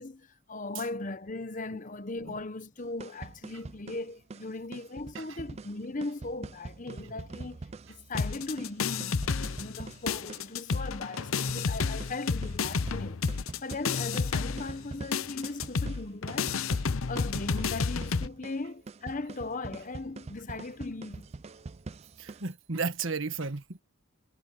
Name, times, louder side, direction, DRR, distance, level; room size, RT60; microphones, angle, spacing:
voice 1, 0.0-13.3 13.6-16.7 17.1-21.3, left 2 dB, 35° left, 0.9 m, -38 dB
sound 1, 2.8-22.5, right 3 dB, 30° right, 0.4 m, -44 dB
sound 2, 8.2-9.8 10.1-18.3, left 5 dB, 70° left, 0.7 m, -31 dB
voice 2, 22.2-23.8, right 4 dB, 65° right, 1.5 m, -34 dB
head